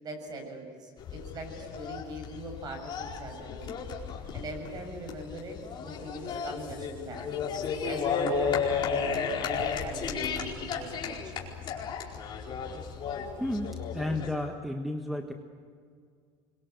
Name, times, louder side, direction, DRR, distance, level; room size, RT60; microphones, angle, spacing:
voice 1, 0.0-3.8 4.3-7.2 7.8-11.5, right 1 dB, 35° right, 4 dB, 7.2 m, -41 dB
sound 1, 1.0-14.3, left 6 dB, 40° left, 4.7 m, -34 dB
voice 2, 13.4-15.3, left 1 dB, ahead, 4 dB, 1.4 m, -32 dB
26.0 x 23.0 x 8.1 m, 2.1 s
cardioid pair, 135°, 12 cm